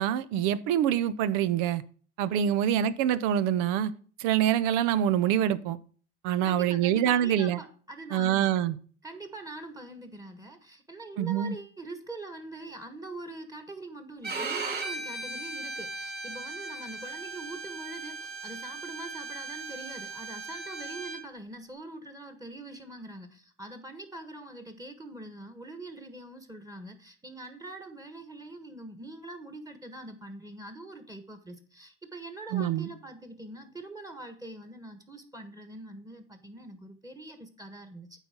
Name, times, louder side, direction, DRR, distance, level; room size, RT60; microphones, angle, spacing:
voice 1, 0.0-1.8 2.2-3.9 4.2-5.8 6.2-7.6 8.1-8.8 11.2-11.6 32.5-32.9, right 10 dB, 75° right, 0.8 m, -25 dB
voice 2, 6.4-8.6 9.0-38.1, right 2 dB, 10° right, 1.5 m, -43 dB
Bowed string instrument, 14.2-21.2, right 3 dB, 30° right, 3.5 m, -37 dB
9.2 x 4.1 x 6.0 m
supercardioid pair, 105°, 31 cm